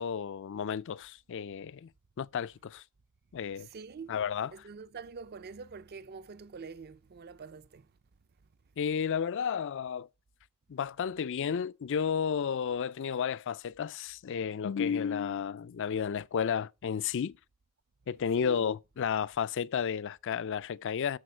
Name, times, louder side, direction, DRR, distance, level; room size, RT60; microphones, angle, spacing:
voice 1, 0.0-1.9 2.2-2.8 3.3-3.7 4.1-4.5 8.8-10.1 10.7-17.4 18.1-21.2, left 7 dB, 55° left, 0.4 m, -32 dB
voice 2, 3.6-4.1 4.5-7.9 18.4-18.6, right 5 dB, 45° right, 0.4 m, -45 dB
12.5 x 5.0 x 4.4 m
head